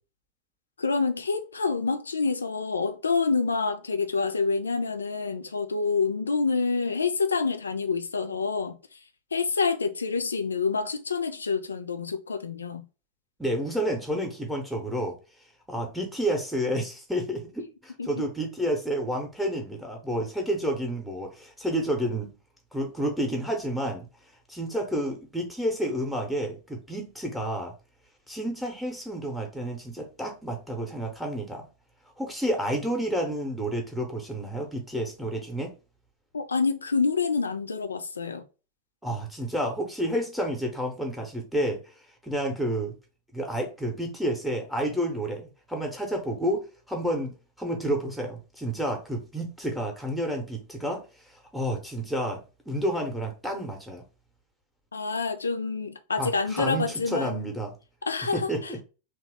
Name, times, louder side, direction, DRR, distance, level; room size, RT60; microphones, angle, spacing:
voice 1, 0.8-8.8 9.3-12.9 18.0-18.2 36.3-38.4 54.9-57.5 58.0-58.8, left 4 dB, 75° left, 0.3 m, -27 dB
voice 2, 13.4-15.2 15.7-22.3 22.7-24.1 24.5-27.7 28.3-31.7 32.2-35.7 39.0-41.8 42.2-42.9 43.3-47.3 47.6-54.0 56.2-57.7 58.3-58.8, equal, ahead, 0.7 m, -30 dB
2.9 x 2.0 x 3.2 m
figure-of-eight pair, 90°, 0 cm